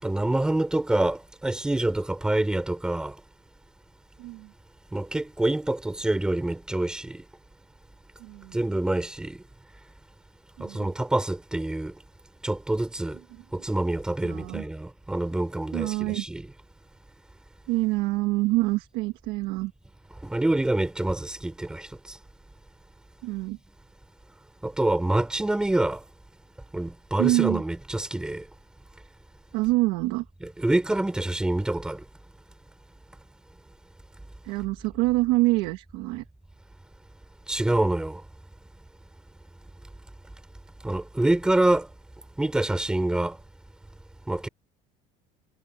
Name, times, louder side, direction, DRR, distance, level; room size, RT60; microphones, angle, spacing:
voice 1, 0.0-3.2 4.9-7.2 8.5-9.4 10.6-11.9 12.4-13.2 13.5-16.5 20.2-22.2 24.6-26.0 26.7-28.4 30.4-32.0 37.5-38.2 40.8-41.9 42.4-43.4 44.3-44.5, right 1 dB, 5° right, 5.6 m, -26 dB
voice 2, 4.2-4.5 8.2-8.6 10.6-10.9 14.2-14.6 15.7-16.2 17.7-19.7 23.2-23.6 27.2-27.6 29.5-30.3 34.4-36.2, right 21 dB, 70° right, 2.0 m, -26 dB
cardioid pair, 175°, 16 cm